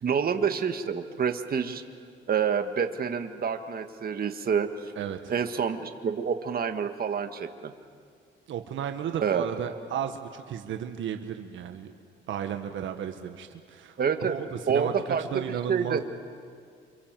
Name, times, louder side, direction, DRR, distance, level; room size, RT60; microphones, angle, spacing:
voice 1, 0.0-1.8 2.3-4.7 5.3-7.7 9.2-9.5 14.0-14.4 14.7-15.4 15.7-16.0, right 7 dB, 50° right, 6 dB, 1.8 m, -27 dB
voice 2, 5.0-5.3 8.5-11.9 12.3-14.9 15.2-16.0, right 9 dB, 75° right, 6 dB, 1.5 m, -34 dB
29.0 x 25.5 x 7.7 m, 2.1 s
cardioid pair, 90°, 20 cm